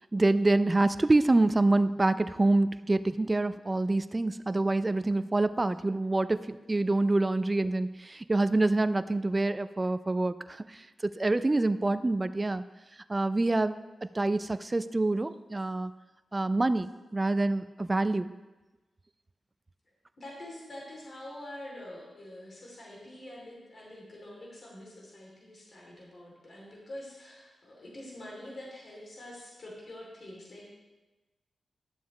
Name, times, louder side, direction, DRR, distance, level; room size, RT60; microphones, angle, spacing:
voice 1, 0.1-12.6 13.1-15.9 16.3-18.3, right 2 dB, 25° right, 13 dB, 0.4 m, -26 dB
voice 2, 20.2-30.7, left 1 dB, 55° left, -4 dB, 2.7 m, -46 dB
11.5 x 7.2 x 3.0 m, 1.1 s
cardioid pair, 70°, 0 cm